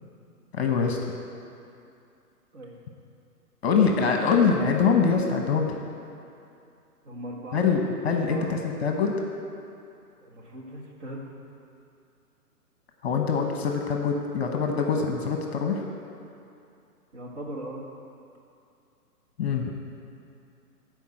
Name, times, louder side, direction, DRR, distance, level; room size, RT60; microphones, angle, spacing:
voice 1, 0.5-1.1 3.6-5.8 7.5-9.2 13.0-15.9 19.4-19.7, left 5 dB, 40° left, 2 dB, 1.0 m, -24 dB
voice 2, 3.6-4.3 7.0-7.7 8.3-8.6 10.2-11.3 17.1-17.8, right 1 dB, 45° right, -2 dB, 1.8 m, -39 dB
10.5 x 4.8 x 7.7 m, 2.6 s
hypercardioid pair, 155°, 48 cm